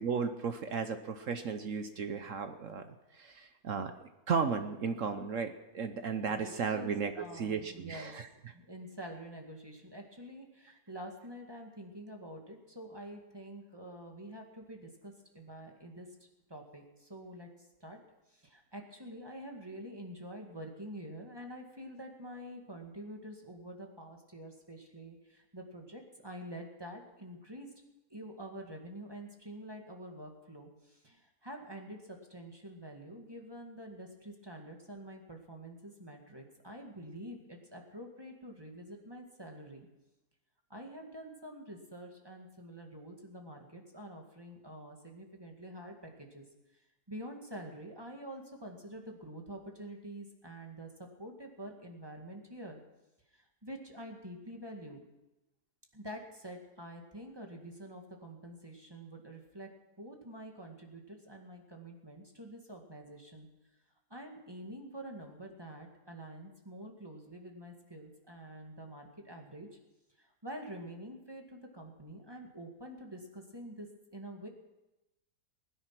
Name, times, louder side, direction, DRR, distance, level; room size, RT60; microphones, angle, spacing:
voice 1, 0.0-8.3, right 5 dB, 60° right, 8 dB, 1.1 m, -35 dB
voice 2, 6.3-8.1 8.5-16.1 16.5-18.0 18.3-27.7 28.1-39.9 40.7-46.5 46.7-52.8 53.3-55.0 55.9-59.7 60.0-63.5 64.1-69.7 70.2-74.5, right 1 dB, 15° right, 2 dB, 1.9 m, -47 dB
20.5 x 10.0 x 6.0 m, 0.98 s
omnidirectional pair, 1.7 m